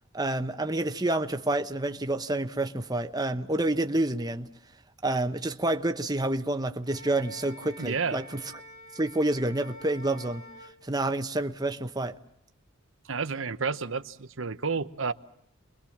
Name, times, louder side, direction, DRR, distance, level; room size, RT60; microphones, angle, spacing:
voice 1, 0.1-4.5 5.0-8.4 8.9-10.4 10.9-12.2, right 2 dB, 20° right, 1.0 m, -28 dB
Wind instrument woodwind instrument, 6.8-10.7, left 1 dB, 40° left, 4.3 m, -47 dB
voice 2, 7.8-8.2 13.1-15.1, right 5 dB, 65° right, 1.0 m, -30 dB
29.0 x 23.0 x 7.3 m
head